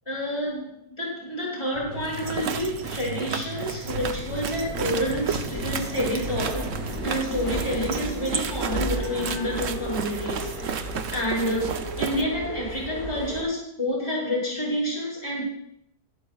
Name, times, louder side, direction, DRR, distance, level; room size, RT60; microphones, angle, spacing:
voice 1, 0.0-10.8 11.1-15.4, equal, 15° left, -9 dB, 6.8 m, -29 dB
sound 1, 1.7-6.9, right 1 dB, 40° right, 4.3 m, -38 dB
sound 2, 2.0-12.2, right 7 dB, 60° right, 1.1 m, -33 dB
sound 3, 3.8-13.4, equal, 90° left, 7.0 m, -34 dB
25.0 x 11.5 x 2.4 m, 0.73 s
omnidirectional pair, 1.6 m